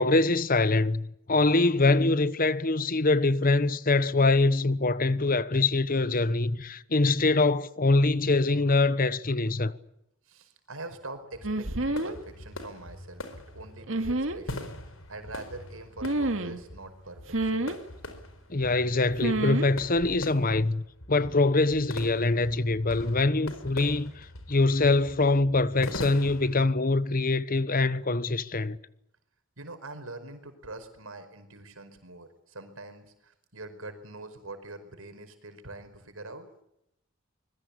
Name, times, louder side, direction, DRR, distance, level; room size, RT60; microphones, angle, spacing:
voice 1, 0.0-9.7 18.5-28.8, left 3 dB, 45° left, 1.1 m, -24 dB
voice 2, 10.3-13.2 13.5-14.7 15.1-17.7 29.6-36.5, right 2 dB, 85° right, 5.0 m, -44 dB
sound 1, 11.3-26.7, left 1 dB, 75° left, 4.5 m, -43 dB
sound 2, 11.4-12.2 13.9-14.4 16.0-16.6 17.3-17.8 19.2-19.7 20.0-20.2, right 2 dB, 65° right, 2.2 m, -28 dB
25.5 x 21.5 x 8.5 m
head